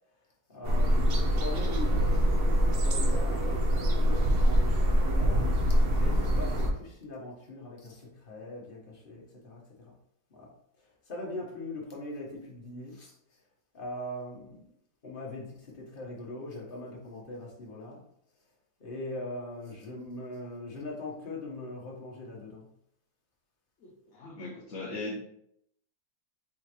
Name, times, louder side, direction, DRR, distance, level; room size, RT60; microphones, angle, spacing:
voice 1, 0.5-9.9 10.3-10.5 11.1-13.1 13.7-14.6 15.0-18.0 18.8-22.7, left 2 dB, 35° left, -3 dB, 1.2 m, -41 dB
sound 1, 0.6-6.7, equal, 50° right, 0.7 m, -24 dB
voice 2, 23.8-25.2, left 2 dB, 60° left, -1 dB, 0.9 m, -39 dB
4.9 x 3.6 x 3.0 m, 0.74 s
omnidirectional pair, 1.7 m